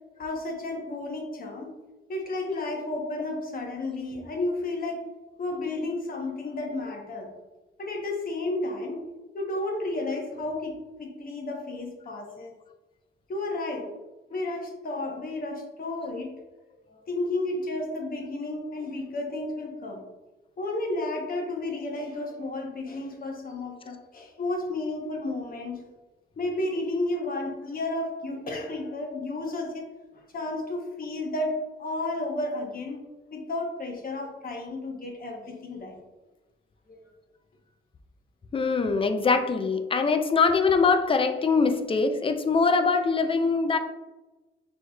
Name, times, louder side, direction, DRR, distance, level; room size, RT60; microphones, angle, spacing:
voice 1, 0.2-1.7 2.1-5.0 5.4-7.3 7.8-9.0 9.3-10.7 11.0-12.5 13.3-13.9 14.3-16.3 16.9-20.0 20.6-25.8 26.4-29.9 30.3-31.5 31.8-33.0 33.3-36.0 36.9-37.0, left 2 dB, 45° left, 1 dB, 0.9 m, -32 dB
voice 2, 38.5-43.8, left 4 dB, 25° left, 7 dB, 0.4 m, -23 dB
6.1 x 3.0 x 2.3 m, 1.1 s
cardioid pair, 115°, 21 cm